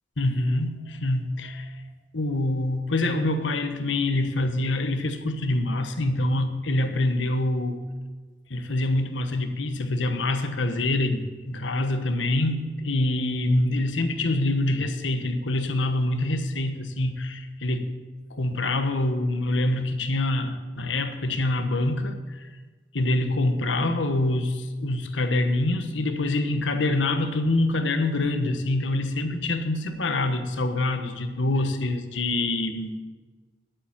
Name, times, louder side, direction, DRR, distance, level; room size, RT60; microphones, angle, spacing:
voice 1, 0.2-1.7 2.1-7.8 8.5-17.9 18.3-22.2 22.9-33.0, left 2 dB, 80° left, 1.2 m, -25 dB
10.5 x 8.8 x 7.4 m
head